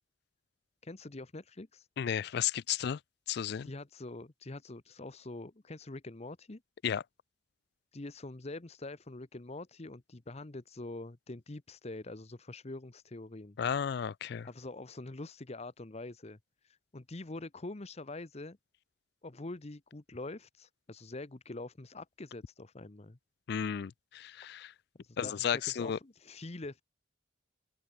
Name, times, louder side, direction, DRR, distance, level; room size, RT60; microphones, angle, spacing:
voice 1, 0.8-1.9 3.6-6.6 7.9-13.6 14.4-18.6 19.2-23.2 25.0-26.8, left 2 dB, 35° left, 0.9 m, -45 dB
voice 2, 2.0-3.0 3.3-3.7 6.8-7.0 13.6-14.5 23.5-24.7 25.2-26.0, left 8 dB, 60° left, 0.4 m, -33 dB
head